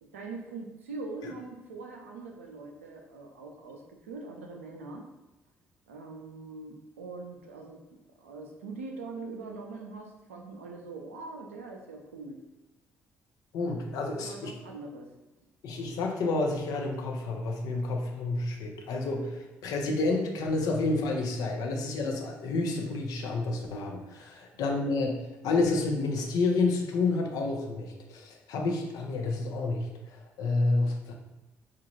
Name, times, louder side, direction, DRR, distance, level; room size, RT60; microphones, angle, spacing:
voice 1, 0.0-5.1 5.9-12.4 14.0-15.1, right 3 dB, 90° right, 1 dB, 0.4 m, -42 dB
voice 2, 13.5-14.5 15.6-25.2 25.4-31.1, left 3 dB, 65° left, 1 dB, 0.7 m, -29 dB
4.3 x 2.4 x 3.0 m, 1.0 s
hypercardioid pair, 50°, 7 cm